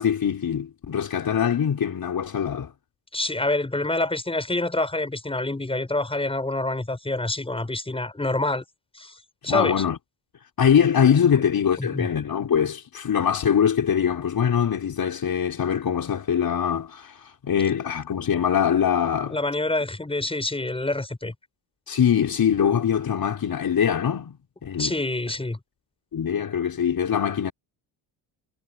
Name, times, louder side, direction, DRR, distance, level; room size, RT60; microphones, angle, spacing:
voice 1, 0.0-2.7 9.4-10.0 10.6-19.4 21.9-24.9 26.1-27.5, left 8 dB, 45° left, 5.1 m, -23 dB
voice 2, 3.1-8.6 9.0-9.1 9.4-9.8 11.8-12.1 19.3-21.3 24.8-25.6, left 2 dB, 10° left, 7.5 m, -27 dB
cardioid pair, 140°, 48 cm